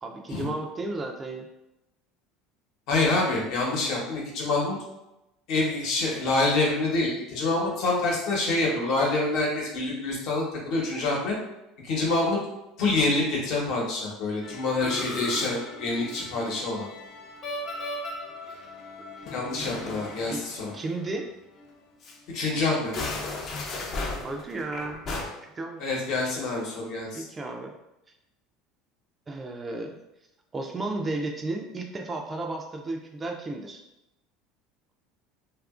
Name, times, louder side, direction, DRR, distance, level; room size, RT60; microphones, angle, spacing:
voice 1, 0.0-1.5 19.0-19.1 20.3-20.4 20.7-21.3 24.2-25.0 25.4-25.8 27.1-27.7 29.3-30.0 30.5-33.8, right 2 dB, 20° right, 2 dB, 0.3 m, -33 dB
voice 2, 2.9-4.8 5.5-11.3 11.8-12.4 12.8-16.9 19.3-20.7 22.3-22.9 25.8-27.2, left 2 dB, 65° left, -2 dB, 0.9 m, -26 dB
Musical instrument, 14.4-21.3 21.6-21.7 22.0-22.2 22.8-25.3, left 2 dB, 45° left, 0.5 m, -36 dB
2.8 x 2.4 x 2.4 m, 0.91 s
supercardioid pair, 115°, 0 cm